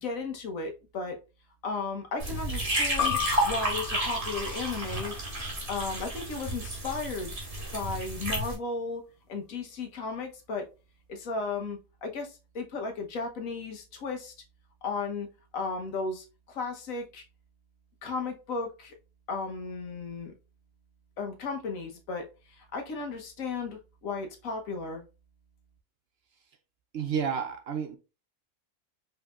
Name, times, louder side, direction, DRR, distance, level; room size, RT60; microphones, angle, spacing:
voice 1, 0.0-1.2 1.6-3.2 3.4-5.1 5.7-7.3 7.7-9.0 9.3-10.7 11.1-14.3 14.8-15.3 15.5-17.2 18.0-18.9 19.3-20.3 21.2-25.0, left 4 dB, 80° left, 1.4 m, -35 dB
sound 1, 2.2-8.5, right 1 dB, 40° right, 1.8 m, -31 dB
sound 2, 3.0-8.1, left 10 dB, 65° left, 1.0 m, -37 dB
voice 2, 26.9-28.0, right 7 dB, 60° right, 0.7 m, -30 dB
5.3 x 3.5 x 2.3 m
omnidirectional pair, 1.4 m